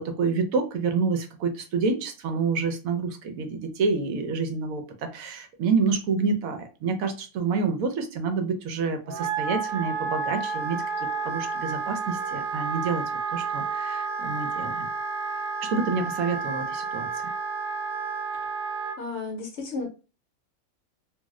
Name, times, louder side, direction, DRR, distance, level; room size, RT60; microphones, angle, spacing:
voice 1, 0.0-13.0 13.3-14.9 15.6-17.2, right 4 dB, 75° right, 6 dB, 1.0 m, -28 dB
Wind instrument woodwind instrument, 9.1-19.0, right 5 dB, 50° right, 0.8 m, -30 dB
voice 2, 19.0-19.9, left 3 dB, 60° left, 2 dB, 0.9 m, -33 dB
2.6 x 2.0 x 3.5 m, 0.33 s
omnidirectional pair, 1.5 m